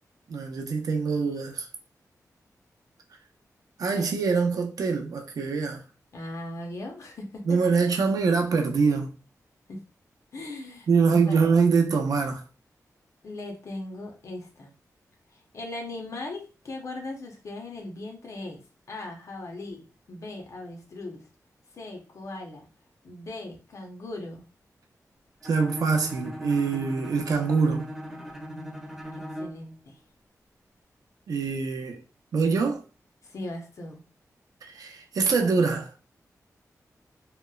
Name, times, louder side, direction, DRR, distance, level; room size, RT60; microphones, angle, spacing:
voice 1, 0.3-1.7 3.8-5.8 7.5-9.1 10.9-12.4 25.4-27.9 31.3-32.0 32.3-32.8 34.6-35.9, right 5 dB, 75° right, 0.5 m, -24 dB
voice 2, 6.1-7.6 9.7-9.8 10.3-11.4 13.2-14.7 15.3-18.6 18.9-21.2 21.7-22.7 23.0-24.4 29.1-30.0 33.2-34.0, left 2 dB, 55° left, 0.6 m, -39 dB
Bowed string instrument, 25.4-29.7, equal, 5° right, 0.4 m, -39 dB
2.8 x 2.0 x 2.2 m
wide cardioid pair, 135°, 6 cm